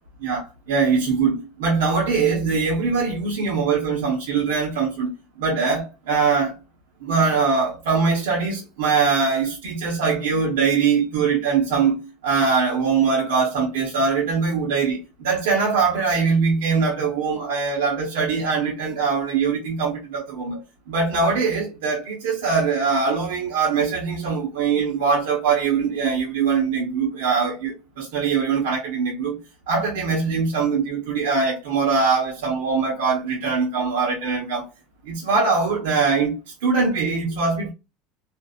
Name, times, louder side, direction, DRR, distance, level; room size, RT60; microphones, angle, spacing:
voice 1, 0.2-5.1 5.4-6.6 7.0-29.4 29.7-34.7 35.0-37.7, right 5 dB, 90° right, 0.9 m, -22 dB
2.5 x 2.3 x 2.3 m
supercardioid pair, 130°, 0 cm